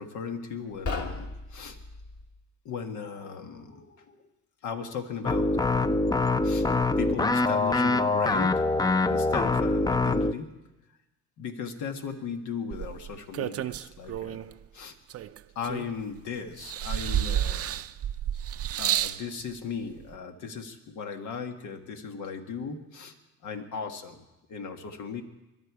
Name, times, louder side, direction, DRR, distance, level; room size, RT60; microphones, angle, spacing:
voice 1, 0.0-1.8 2.7-4.2 4.6-6.0 6.4-6.7 7.0-10.6 11.4-14.9 15.6-17.9 18.8-23.1 23.4-24.2 24.5-25.2, left 6 dB, 80° left, 5 dB, 1.6 m, -37 dB
sound 1, 0.7-2.3, left 3 dB, 55° left, 1.8 m, -36 dB
sound 2, 5.2-10.3, left 3 dB, 15° left, 0.5 m, -24 dB
sound 3, 12.7-14.5 15.1-16.2 16.6-19.2 20.1-20.2, right 11 dB, 50° right, 0.5 m, -30 dB
21.5 x 11.5 x 4.8 m, 1.0 s
cardioid pair, 90°, 30 cm